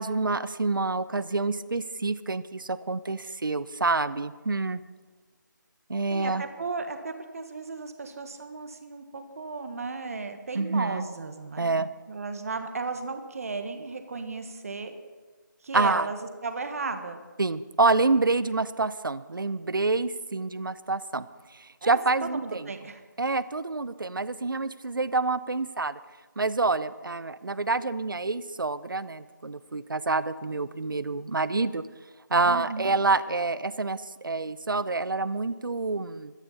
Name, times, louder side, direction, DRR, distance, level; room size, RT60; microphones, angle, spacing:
voice 1, 0.0-4.8 5.9-6.4 10.5-11.1 11.6-11.9 15.7-16.1 17.4-21.3 21.6-22.7 23.2-26.0 26.4-31.8 32.3-36.3, right 3 dB, 85° right, 15 dB, 0.8 m, -27 dB
voice 2, 6.1-14.9 15.6-17.2 21.8-23.0 32.4-32.9, right 4 dB, 45° right, 7 dB, 1.6 m, -35 dB
21.0 x 12.5 x 4.2 m, 1.3 s
figure-of-eight pair, 170°, 11 cm